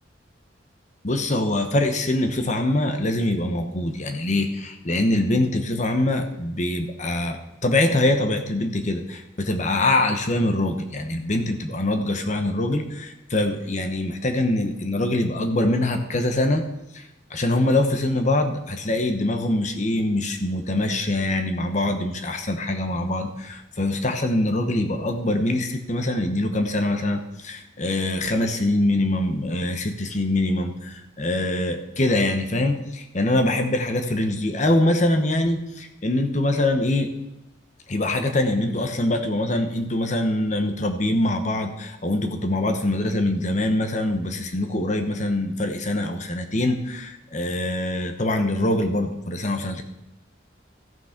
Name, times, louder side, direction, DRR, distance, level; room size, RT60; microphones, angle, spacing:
voice 1, 1.0-16.6 16.9-37.1 37.9-49.8, left 1 dB, 40° left, 6 dB, 1.1 m, -24 dB
14.0 x 6.2 x 5.9 m, 0.90 s
head